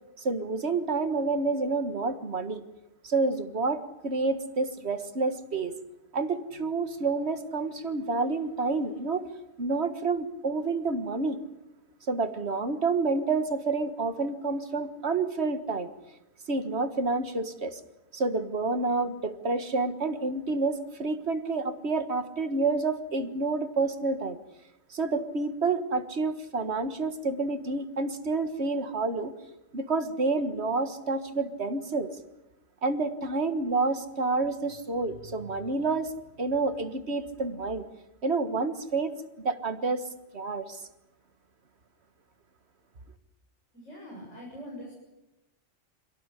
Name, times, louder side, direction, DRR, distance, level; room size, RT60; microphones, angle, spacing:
voice 1, 0.2-2.6 3.0-5.7 6.1-9.2 9.6-11.4 12.1-15.9 16.5-17.8 18.1-24.4 24.9-29.3 29.7-32.1 32.8-36.1 36.4-37.9 38.2-39.1 39.4-40.8, right 3 dB, 60° right, 10 dB, 1.9 m, -29 dB
voice 2, 43.7-45.0, equal, 80° left, -3 dB, 7.8 m, -43 dB
26.5 x 18.0 x 10.0 m, 0.92 s
omnidirectional pair, 1.2 m